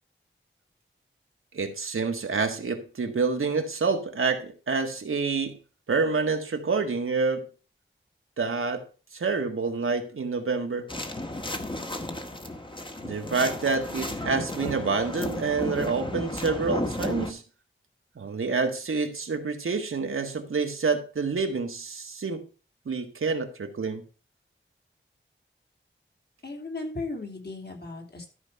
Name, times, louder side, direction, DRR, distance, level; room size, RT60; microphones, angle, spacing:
voice 1, 1.5-5.6 5.9-7.4 8.4-8.8 9.1-10.9 13.0-17.4 18.2-22.4 22.8-24.0, right 4 dB, 90° right, 1.6 m, -27 dB
sound 1, 10.9-17.3, left 1 dB, 25° left, 1.4 m, -33 dB
voice 2, 26.4-28.3, left 3 dB, 50° left, 3.3 m, -36 dB
13.5 x 5.1 x 5.5 m
wide cardioid pair, 80°, 21 cm